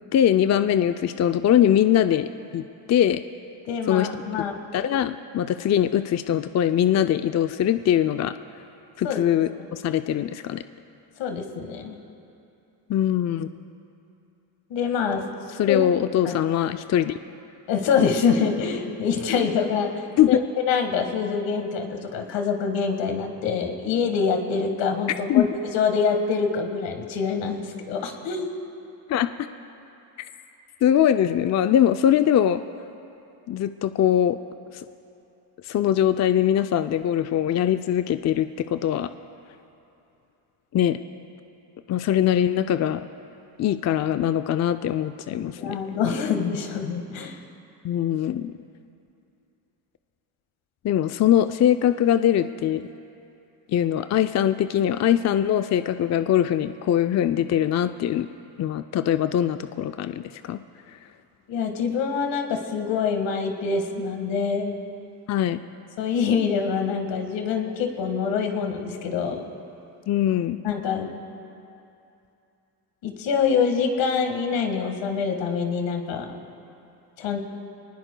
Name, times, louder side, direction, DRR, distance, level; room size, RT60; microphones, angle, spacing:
voice 1, 0.1-2.6 2.9-3.2 3.9-4.1 4.7-8.3 9.0-10.6 12.9-13.5 15.6-17.2 20.2-20.4 25.3-25.5 29.1-29.3 30.2-30.3 30.8-32.6 33.5-34.4 35.6-39.1 40.7-41.0 41.9-43.1 43.6-45.8 47.8-48.5 50.8-52.9 53.7-58.3 58.6-60.6 65.3-65.6 70.1-70.6, left 10 dB, 40° left, 10 dB, 0.5 m, -22 dB
voice 2, 3.7-4.6 9.0-9.2 9.6-9.7 11.2-12.0 14.7-15.3 15.7-15.8 16.2-16.4 17.7-19.9 20.3-25.5 25.7-28.5 45.3-47.4 61.5-64.8 66.0-69.5 70.6-71.1 73.0-76.3 77.2-77.4, left 6 dB, 75° left, 4 dB, 1.8 m, -25 dB
23.5 x 19.5 x 2.3 m, 2.7 s
supercardioid pair, 75°, 45 cm